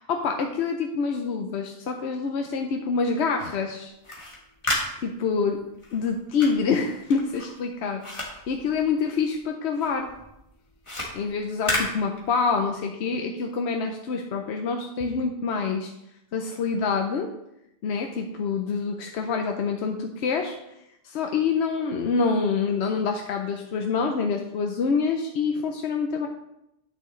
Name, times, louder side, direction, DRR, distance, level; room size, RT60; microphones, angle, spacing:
voice 1, 0.0-3.9 5.0-5.6 5.9-10.1 11.1-15.9 16.3-17.3 17.8-20.6 21.0-26.3, left 5 dB, 80° left, 3 dB, 0.9 m, -26 dB
sound 1, 3.9-9.4 9.7-12.7, left 1 dB, 30° left, 1.7 m, -33 dB
9.1 x 7.3 x 3.2 m, 0.84 s
omnidirectional pair, 1.1 m